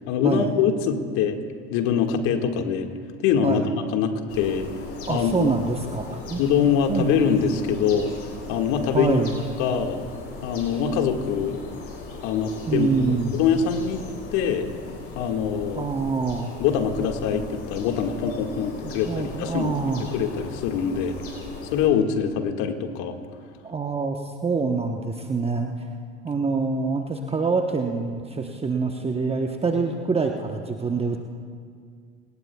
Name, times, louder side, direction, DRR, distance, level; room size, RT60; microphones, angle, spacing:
voice 1, 0.1-1.4 1.7-2.9 3.2-3.6 3.9-4.7 5.1-5.5 6.4-8.1 8.5-9.2 9.6-10.0 10.4-11.6 12.2-12.9 13.3-14.0 14.3-14.7 15.1-15.9 16.6-21.2 21.7-23.2, left 7 dB, 60° left, 4 dB, 1.9 m, -23 dB
sound 1, 4.3-21.9, left 3 dB, 40° left, 4.3 m, -38 dB
voice 2, 5.1-6.4 6.9-7.1 8.9-9.4 12.7-13.4 15.8-16.5 18.8-20.1 23.6-25.7 26.2-31.2, right 4 dB, 15° right, 3 dB, 1.0 m, -26 dB
27.0 x 19.0 x 2.3 m, 2.1 s
hypercardioid pair, 80°, 34 cm